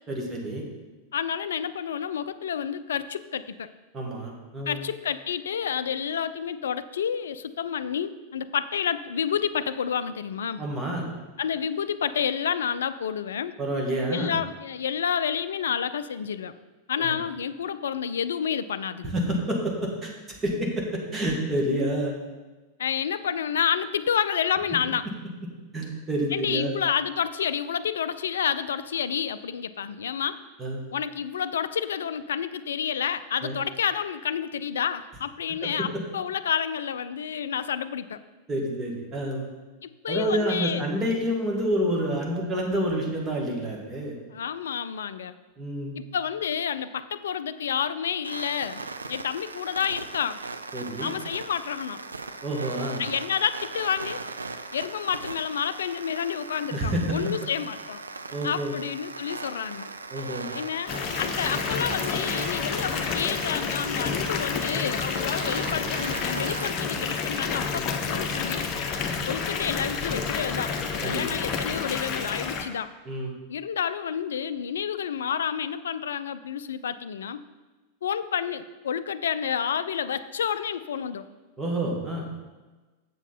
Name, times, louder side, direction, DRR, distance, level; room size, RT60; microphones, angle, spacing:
voice 1, 0.1-0.6 3.9-4.8 10.6-11.1 13.6-14.3 17.0-17.2 19.0-22.2 25.7-26.7 30.6-30.8 33.4-33.5 35.6-35.7 38.5-39.4 40.1-44.2 45.6-46.0 50.7-51.1 52.4-53.0 56.7-57.3 58.3-58.7 60.1-60.5 71.0-71.4 73.1-73.3 81.6-82.3, right 1 dB, 20° right, -1 dB, 2.0 m, -28 dB
voice 2, 1.1-3.7 4.7-10.6 11.4-13.5 14.1-16.5 16.9-19.1 22.8-25.1 26.3-30.4 30.9-38.2 39.8-40.8 44.3-45.3 46.0-48.8 49.1-50.4 51.0-52.0 53.0-54.2 54.7-58.0 58.4-59.9 60.5-60.9 61.2-68.6 69.3-70.7 71.0-72.9 73.5-77.4 78.0-81.2, left 8 dB, 65° left, 14 dB, 0.4 m, -29 dB
sound 1, 48.2-66.7, right 3 dB, 80° right, 0.4 m, -38 dB
Water tap faucet / Bathtub (filling or washing) / Fill (with liquid), 60.9-72.6, left 5 dB, 35° left, 0.8 m, -29 dB
7.5 x 7.0 x 4.2 m, 1.2 s
figure-of-eight pair, 90°, 0 cm